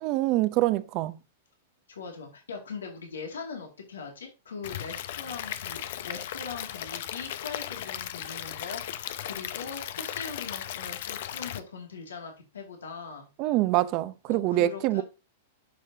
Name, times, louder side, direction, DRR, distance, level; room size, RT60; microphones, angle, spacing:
voice 1, 0.0-1.2 13.4-15.0, right 16 dB, 45° right, 0.7 m, -25 dB
voice 2, 1.9-13.3 14.3-15.0, left 5 dB, 90° left, 2.5 m, -41 dB
Stream / Liquid, 4.6-11.6, left 11 dB, 65° left, 0.7 m, -36 dB
10.5 x 6.4 x 2.9 m
hypercardioid pair, 115°, 0 cm